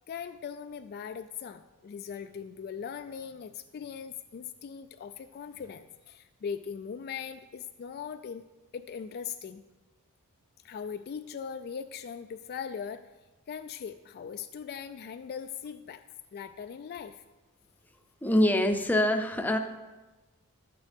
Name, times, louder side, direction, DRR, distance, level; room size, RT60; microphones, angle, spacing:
voice 1, 0.1-8.4 8.7-9.6 10.6-13.1 13.5-16.0 16.3-17.2, left 7 dB, 45° left, 9 dB, 0.3 m, -40 dB
voice 2, 18.2-19.6, left 1 dB, 10° left, 5 dB, 0.6 m, -24 dB
12.0 x 9.0 x 3.5 m, 1.1 s
head